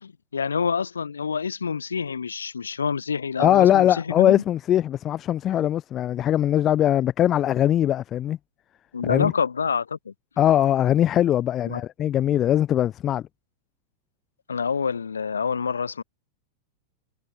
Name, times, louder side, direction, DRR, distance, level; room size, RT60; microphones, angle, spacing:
voice 1, 0.0-4.3 8.9-10.1 11.6-11.8 14.5-16.0, left 6 dB, 70° left, 1.0 m, -27 dB
voice 2, 3.4-8.4 9.1-9.3 10.4-13.3, left 11 dB, 30° left, 1.0 m, -21 dB
figure-of-eight pair, 90°, 0 cm